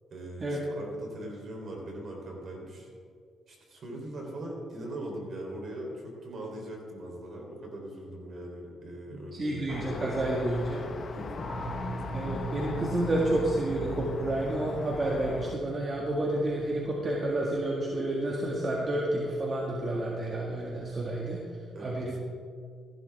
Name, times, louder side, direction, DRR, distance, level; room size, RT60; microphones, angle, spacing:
voice 1, 0.1-2.9 3.5-9.8 11.1-11.6 21.7-22.0, right 1 dB, 55° right, 0 dB, 3.5 m, -41 dB
voice 2, 9.1-10.8 12.1-21.4 21.8-22.2, right 1 dB, 35° right, -3 dB, 1.9 m, -30 dB
sound 1, 9.7-15.6, left 5 dB, 45° left, 0.7 m, -40 dB
sound 2, 11.4-17.7, right 2 dB, 30° left, 3.8 m, -40 dB
15.0 x 12.0 x 3.5 m, 2.2 s
cardioid pair, 90°, 0 cm